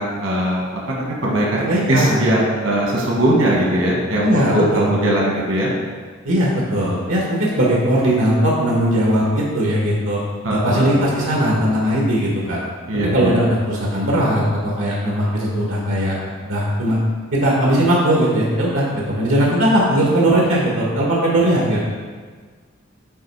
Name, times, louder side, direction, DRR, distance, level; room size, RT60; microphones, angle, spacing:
voice 1, 0.0-1.6 1.9-5.7 10.4-11.0 12.9-13.3, right 1 dB, 70° right, -3 dB, 1.5 m, -20 dB
voice 2, 1.6-2.2 4.2-4.9 6.2-10.2 10.5-12.6 13.1-16.2 16.4-17.0 17.3-21.8, right 1 dB, 85° right, -4 dB, 1.3 m, -18 dB
8.7 x 3.1 x 4.7 m, 1.5 s
head